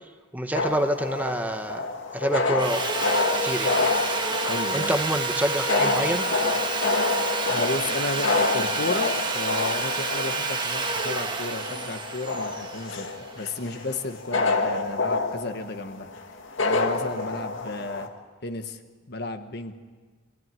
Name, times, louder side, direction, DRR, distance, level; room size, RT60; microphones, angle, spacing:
voice 1, 0.3-1.9 2.1-2.8 3.4-3.8 4.7-6.3, right 1 dB, 10° right, 6 dB, 1.1 m, -27 dB
sound 1, 0.5-18.1, left 3 dB, 85° left, 2.0 m, -28 dB
Sawing, 2.6-13.6, right 3 dB, 25° right, 1.5 m, -29 dB
voice 2, 4.4-5.0 7.5-16.1 16.6-18.1 18.4-18.8 19.1-19.7, left 2 dB, 60° left, 7 dB, 1.4 m, -33 dB
24.5 x 15.5 x 9.2 m, 1.5 s
head